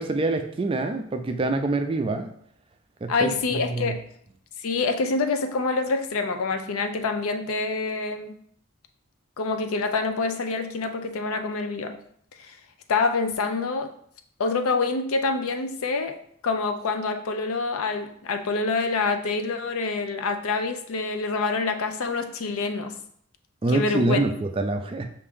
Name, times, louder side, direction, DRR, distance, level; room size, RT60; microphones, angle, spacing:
voice 1, 0.0-2.3 3.0-3.9 23.6-25.1, right 2 dB, 25° right, 6 dB, 0.3 m, -26 dB
voice 2, 3.1-4.0 4.6-8.3 9.4-12.0 12.4-12.6 12.9-13.9 14.4-22.9 23.7-24.2, left 4 dB, 85° left, 7 dB, 0.5 m, -26 dB
5.6 x 2.5 x 3.6 m, 0.65 s
head